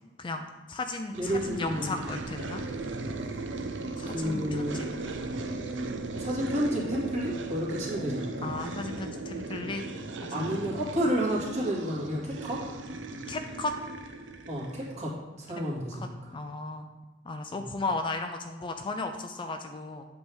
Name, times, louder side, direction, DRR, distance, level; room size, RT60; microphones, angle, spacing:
voice 1, 0.2-2.6 4.0-4.9 6.4-6.5 8.4-9.8 10.2-10.4 13.3-13.7 15.9-16.9 17.3-20.1, left 3 dB, 25° left, 5 dB, 0.4 m, -35 dB
voice 2, 1.1-2.0 4.1-4.8 6.2-8.5 10.3-12.6 14.5-16.1 17.5-17.7, equal, 40° right, -5 dB, 2.1 m, -31 dB
sound 1, 1.1-15.0, right 3 dB, 75° right, 0.6 m, -37 dB
7.9 x 3.5 x 6.3 m, 1.2 s
head